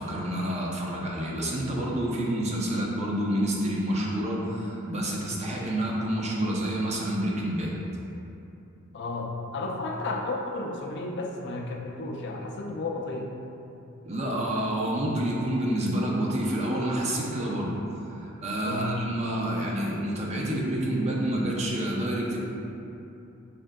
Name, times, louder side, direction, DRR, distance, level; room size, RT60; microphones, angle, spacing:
voice 1, 0.0-7.8 14.0-17.7 18.1-22.4, right 1 dB, 30° right, -3 dB, 0.5 m, -28 dB
voice 2, 8.9-13.3 18.6-19.1, left 2 dB, 55° left, 1 dB, 0.4 m, -33 dB
4.3 x 3.6 x 2.2 m, 2.9 s
head